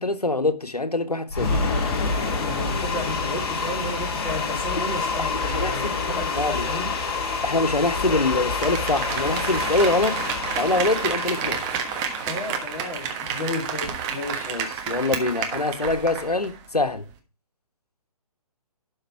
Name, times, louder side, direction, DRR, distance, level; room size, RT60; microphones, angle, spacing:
voice 1, 0.0-1.6 4.8-4.9 5.2-6.0 6.3-6.7 7.4-10.2 10.6-11.6 14.5-17.0, left 2 dB, 85° left, 1.4 m, -24 dB
sound 1, 1.3-13.4, left 4 dB, 40° left, 2.0 m, -27 dB
voice 2, 2.4-6.9 12.3-14.6, left 2 dB, 10° left, 2.7 m, -33 dB
Applause, 8.4-16.6 16.9-17.0, right 7 dB, 20° right, 1.3 m, -30 dB
12.0 x 5.5 x 4.6 m
figure-of-eight pair, 140°, 19 cm